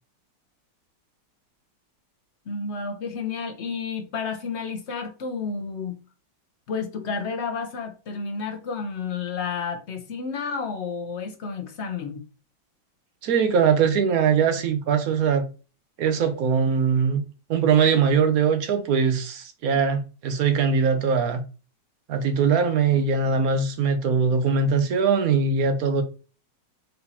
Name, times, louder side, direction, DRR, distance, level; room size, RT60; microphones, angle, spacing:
voice 1, 2.5-6.0 6.7-12.2, left 5 dB, 55° left, 0.8 m, -31 dB
voice 2, 13.2-15.4 16.0-17.2 17.5-21.4 22.1-26.0, right 6 dB, 60° right, 1.0 m, -21 dB
4.1 x 4.1 x 2.7 m
omnidirectional pair, 2.0 m